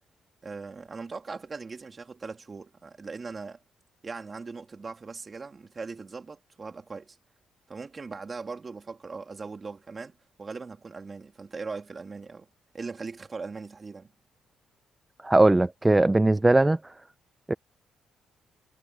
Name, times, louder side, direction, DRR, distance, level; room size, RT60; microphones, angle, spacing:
voice 1, 0.4-3.6 4.0-7.2 7.7-12.5 12.7-14.1, right 4 dB, 30° right, 3.2 m, -39 dB
voice 2, 15.2-16.8 17.5-17.6, right 2 dB, 15° right, 0.6 m, -19 dB
cardioid pair, 90°, 0 cm